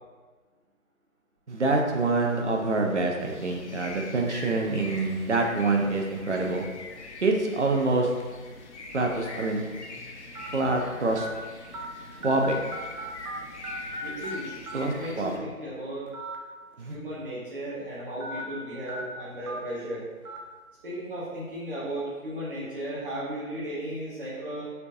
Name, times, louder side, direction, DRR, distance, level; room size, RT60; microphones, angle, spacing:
voice 1, 1.5-6.7 7.2-8.1 8.9-9.6 10.5-11.3 12.2-12.6 14.7-15.3 16.8-17.0, right 3 dB, 55° right, 2 dB, 0.6 m, -26 dB
sound 1, 3.2-15.4, left 3 dB, 55° left, 0.5 m, -44 dB
sound 2, 8.2-8.4 9.1-9.2 10.4-10.5 11.2-11.3 11.7-11.9 12.2-13.4 13.6-14.4 14.7-14.8 16.1-16.4 16.7-16.8 18.2-18.4 18.9-19.0 19.5-19.6 20.3-20.4, equal, 90° right, 0.7 m, -36 dB
voice 2, 14.0-16.1 16.9-20.1 20.8-24.7, right 1 dB, 40° right, -9 dB, 1.0 m, -35 dB
4.3 x 2.7 x 2.6 m, 1.4 s
figure-of-eight pair, 165°, 42 cm